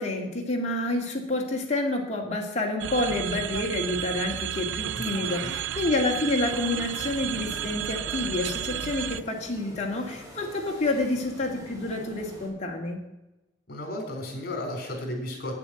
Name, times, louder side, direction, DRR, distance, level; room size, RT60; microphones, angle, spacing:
voice 1, 0.0-13.0, left 2 dB, 35° left, 0 dB, 2.2 m, -28 dB
sound 1, 2.8-9.2, right 10 dB, 75° right, 0.4 m, -32 dB
voice 2, 5.0-5.5 13.7-15.6, left 1 dB, 55° left, 2 dB, 4.0 m, -34 dB
sound 2, 6.5-12.5, equal, 20° right, 3.4 m, -45 dB
9.1 x 8.4 x 7.7 m, 1.0 s
head